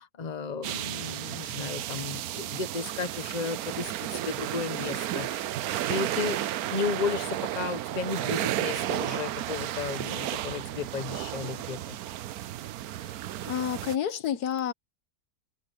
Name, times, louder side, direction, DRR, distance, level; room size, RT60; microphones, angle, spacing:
voice 1, 0.0-5.5 5.9-6.4 6.7-12.0, left 5 dB, 30° left, 1.1 m, -34 dB
sound 1, 0.6-14.0, right 13 dB, 75° right, 1.1 m, -33 dB
voice 2, 13.4-14.7, left 9 dB, 85° left, 1.6 m, -30 dB
omnidirectional pair, 1.6 m